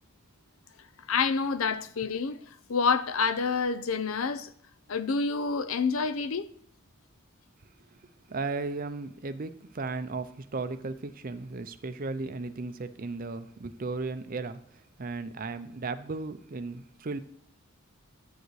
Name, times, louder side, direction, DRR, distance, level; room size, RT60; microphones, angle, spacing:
voice 1, 1.1-2.4 2.7-4.5 4.9-6.5, left 5 dB, 70° left, 0.5 m, -28 dB
voice 2, 8.3-14.6 15.0-17.2, right 3 dB, 40° right, 0.5 m, -35 dB
10.5 x 9.1 x 3.2 m
head